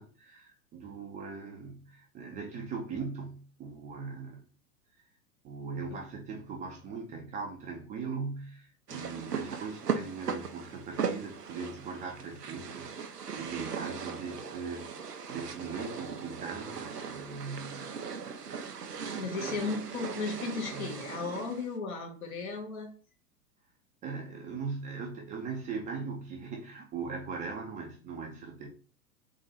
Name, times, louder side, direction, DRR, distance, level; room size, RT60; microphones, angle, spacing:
voice 1, 0.0-4.4 5.4-17.9 19.5-19.6 20.7-21.0 24.0-28.7, right 5 dB, 15° right, 0 dB, 0.6 m, -40 dB
sound 1, 8.9-21.7, right 6 dB, 90° right, 0.6 m, -38 dB
voice 2, 19.2-22.9, left 4 dB, 65° left, 1 dB, 1.6 m, -35 dB
3.8 x 2.9 x 4.0 m, 0.41 s
figure-of-eight pair, 100°, 46 cm